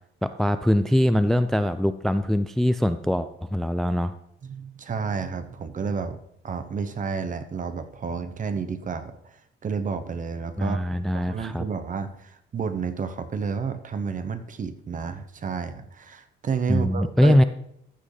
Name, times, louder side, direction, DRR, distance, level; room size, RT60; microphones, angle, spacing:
voice 1, 0.2-4.1 10.6-11.6 16.7-17.4, equal, ahead, 11 dB, 0.3 m, -22 dB
voice 2, 4.4-6.2 6.4-9.2 9.6-17.4, right 5 dB, 40° right, 10 dB, 0.8 m, -31 dB
14.0 x 6.2 x 3.3 m, 0.75 s
cardioid pair, 90°, 20 cm